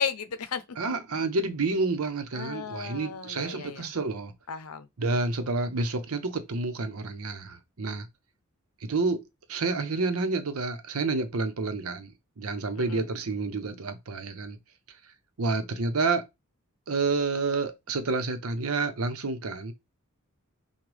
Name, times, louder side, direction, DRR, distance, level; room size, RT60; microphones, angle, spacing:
voice 1, 0.0-0.6 2.3-3.9 4.5-4.9 12.8-13.0, left 6 dB, 90° left, 0.6 m, -34 dB
voice 2, 0.8-4.3 5.0-8.1 8.8-9.2 9.5-14.6 15.4-16.3 16.9-19.7, right 3 dB, 75° right, 0.8 m, -29 dB
6.1 x 2.2 x 3.3 m
head